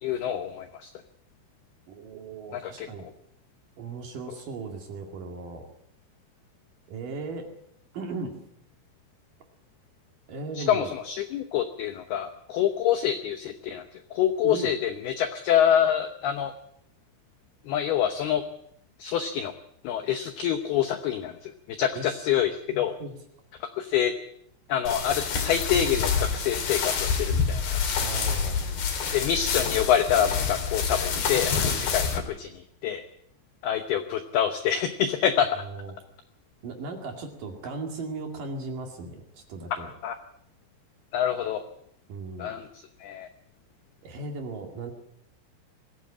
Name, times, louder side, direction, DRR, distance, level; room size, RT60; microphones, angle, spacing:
voice 1, 0.0-0.9 2.5-3.1 10.5-16.5 17.7-18.4 19.0-19.5 19.8-22.9 23.6-24.1 24.7-27.8 29.1-33.0 33.6-35.5 39.8-40.2 41.1-41.6 42.4-43.3, left 9 dB, 80° left, 9 dB, 2.3 m, -26 dB
voice 2, 1.9-3.1 3.8-5.7 6.9-7.5 7.9-8.4 10.3-10.9 14.4-14.7 21.9-22.2 22.7-23.2 28.0-28.8 35.6-35.9 36.6-39.9 42.1-42.5 44.0-44.9, right 3 dB, 50° right, 3 dB, 3.3 m, -37 dB
sound 1, 24.9-32.2, left 6 dB, 60° left, 4.4 m, -27 dB
21.0 x 16.0 x 8.6 m, 0.73 s
omnidirectional pair, 5.8 m